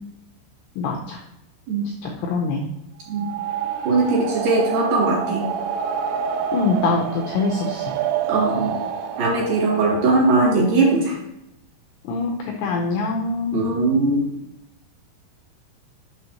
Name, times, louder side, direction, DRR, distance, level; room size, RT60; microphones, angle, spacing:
voice 1, 0.8-1.2 2.0-2.6 6.5-7.9 12.1-13.6, left 3 dB, 85° left, 0 dB, 2.4 m, -24 dB
sound 1, 3.1-10.7, right 8 dB, 85° right, 3.0 m, -28 dB
voice 2, 3.8-5.5 8.3-8.8 9.2-11.2 13.5-14.3, right 2 dB, 55° right, -4 dB, 2.6 m, -20 dB
7.9 x 6.3 x 2.9 m, 0.85 s
omnidirectional pair, 6.0 m